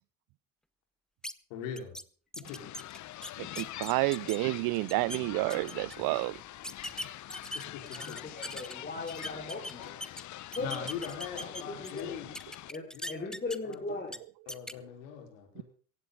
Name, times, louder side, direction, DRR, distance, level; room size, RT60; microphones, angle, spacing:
sound 1, 1.2-1.3 1.8-2.0 2.3-4.4 4.7-5.2 5.5-6.0 6.6-8.7 9.1-10.2 10.5-12.0 12.3-13.7 14.1-14.2 14.5-14.7, left 1 dB, ahead, 0.8 m, -40 dB
voice 1, 1.5-2.0 2.5-2.6 7.7-8.2 10.6-12.3 12.9-13.3 13.7-13.8 14.5-15.6, left 8 dB, 70° left, 4.9 m, -41 dB
sound 2, 2.4-12.7, left 14 dB, 45° left, 0.9 m, -45 dB
voice 2, 3.4-6.4 15.6-15.7, right 24 dB, 55° right, 0.6 m, -30 dB
voice 3, 7.9-10.1 10.5-12.2 12.7-14.1, left 3 dB, 20° left, 5.0 m, -39 dB
17.0 x 15.5 x 4.0 m
hypercardioid pair, 75°, 41 cm